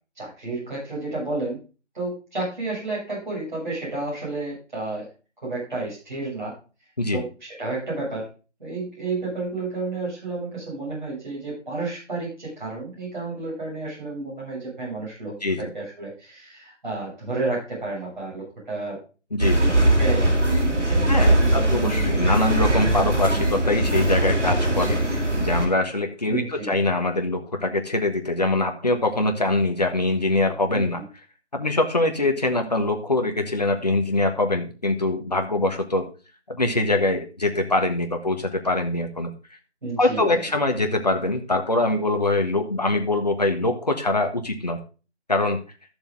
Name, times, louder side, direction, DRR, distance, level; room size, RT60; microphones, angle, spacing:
voice 1, 0.2-1.6 1.9-5.1 5.4-6.5 7.1-8.3 8.6-19.0 19.6-22.2 26.3-26.7 30.7-31.0 39.8-40.4, right 3 dB, 40° right, -6 dB, 7.2 m, -31 dB
voice 2, 15.4-15.7 19.3-19.7 21.1-25.0 25.4-31.0 31.5-36.0 36.5-39.3 40.0-44.8 45.3-45.6, left 2 dB, 35° left, 5 dB, 1.4 m, -23 dB
sound 1, 19.4-25.6, right 1 dB, 80° right, 4.4 m, -20 dB
12.5 x 7.0 x 3.9 m, 0.34 s
figure-of-eight pair, 170°, 35 cm